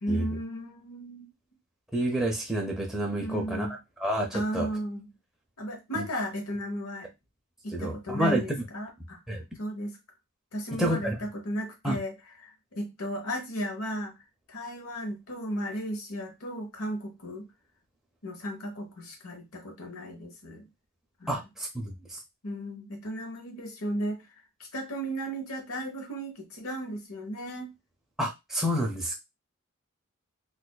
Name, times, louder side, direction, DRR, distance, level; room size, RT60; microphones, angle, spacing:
voice 1, 0.0-1.3 3.2-3.8 4.3-5.1 5.6-7.1 7.6-9.2 9.6-10.0 10.5-14.1 14.5-17.5 18.2-20.7 21.2-21.4 22.4-24.2 24.7-27.7, equal, 80° left, 1.0 m, -35 dB
voice 2, 1.9-3.7 4.0-4.7 5.9-6.1 7.7-8.4 9.3-9.4 10.8-11.2 11.8-12.0 21.3-21.9 28.2-29.2, right 1 dB, ahead, 0.6 m, -29 dB
4.0 x 2.5 x 2.3 m
head